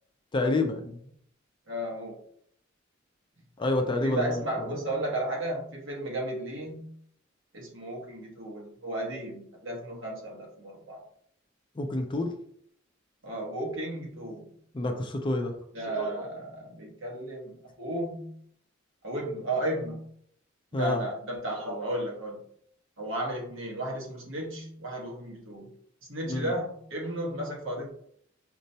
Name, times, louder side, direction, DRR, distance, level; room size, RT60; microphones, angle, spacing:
voice 1, 0.3-1.0 3.6-4.8 11.8-12.3 14.7-15.5 20.7-21.0 26.3-26.5, left 2 dB, 25° left, 5 dB, 0.4 m, -28 dB
voice 2, 1.7-2.2 3.9-6.9 7.5-11.0 13.2-14.5 15.7-18.3 19.0-20.1 20.7-22.4 23.0-25.7 26.1-27.9, right 1 dB, 75° right, -2 dB, 1.2 m, -34 dB
5.1 x 2.1 x 2.7 m, 0.65 s
head